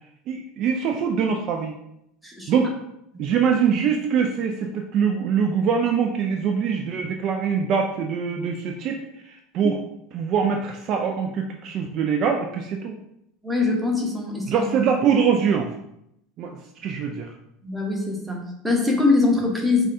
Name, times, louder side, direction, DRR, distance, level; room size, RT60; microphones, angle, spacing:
voice 1, 0.3-1.8 2.5-2.7 3.2-9.0 9.2-9.8 10.1-12.9 14.5-15.7 16.4-17.3, right 6 dB, 50° right, 3 dB, 0.3 m, -23 dB
voice 2, 2.2-2.6 3.1-3.2 9.6-9.7 13.4-14.7 17.6-19.9, left 3 dB, 5° right, 0 dB, 0.9 m, -23 dB
5.2 x 2.2 x 2.6 m, 0.79 s
figure-of-eight pair, 75°, 0 cm